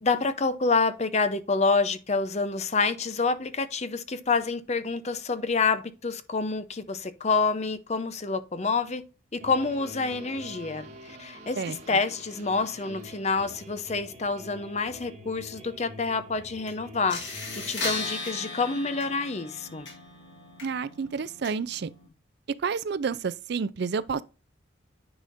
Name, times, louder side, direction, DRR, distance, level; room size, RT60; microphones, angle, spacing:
voice 1, 0.0-9.0 9.3-17.4 17.7-19.9, left 4 dB, 35° left, 0.7 m, -27 dB
sound 1, 9.4-18.1, equal, 35° right, 2.1 m, -45 dB
sound 2, 16.7-16.8 17.1-22.1, left 3 dB, 65° left, 3.2 m, -37 dB
voice 2, 20.6-21.9 22.6-24.2, right 5 dB, 55° right, 0.4 m, -30 dB
10.0 x 5.0 x 2.6 m
head